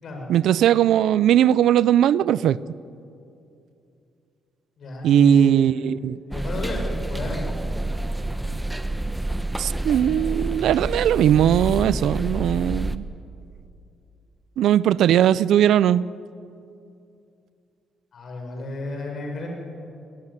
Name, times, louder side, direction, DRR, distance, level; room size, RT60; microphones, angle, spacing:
voice 1, 0.3-2.6 5.0-6.2 9.6-13.0 14.6-16.1, right 10 dB, 80° right, 19 dB, 0.5 m, -19 dB
voice 2, 4.8-5.6 6.3-6.8 7.1-7.4 18.1-19.5, left 3 dB, 55° left, 1 dB, 6.2 m, -32 dB
sound 1, 6.3-13.0, right 1 dB, 5° right, 1.0 m, -28 dB
21.0 x 20.0 x 9.8 m, 2.6 s
cardioid pair, 90°, 0 cm